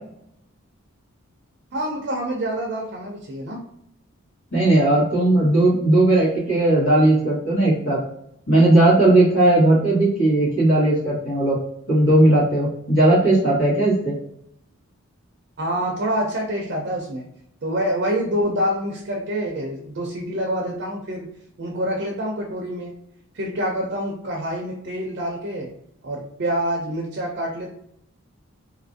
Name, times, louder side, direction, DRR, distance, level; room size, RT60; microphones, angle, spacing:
voice 1, 1.7-3.6 15.6-17.3 17.6-21.3 21.6-22.9 23.3-25.7 26.0-27.7, equal, 50° right, 0 dB, 0.5 m, -26 dB
voice 2, 4.5-8.0 8.5-11.5 11.9-14.1, right 1 dB, 80° left, -8 dB, 1.4 m, -17 dB
2.7 x 2.5 x 2.6 m, 0.74 s
head